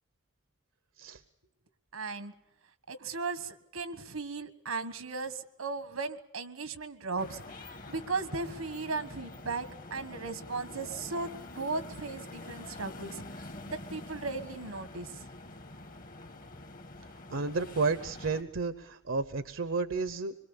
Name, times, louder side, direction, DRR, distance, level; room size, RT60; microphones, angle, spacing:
voice 1, 1.9-2.3 2.9-7.4 7.7-15.2, right 3 dB, 90° right, 11 dB, 1.5 m, -37 dB
sound 1, 7.2-18.4, left 2 dB, 40° left, 1.3 m, -46 dB
voice 2, 17.3-20.3, right 4 dB, 65° right, 11 dB, 0.8 m, -32 dB
25.5 x 22.5 x 7.0 m, 0.82 s
head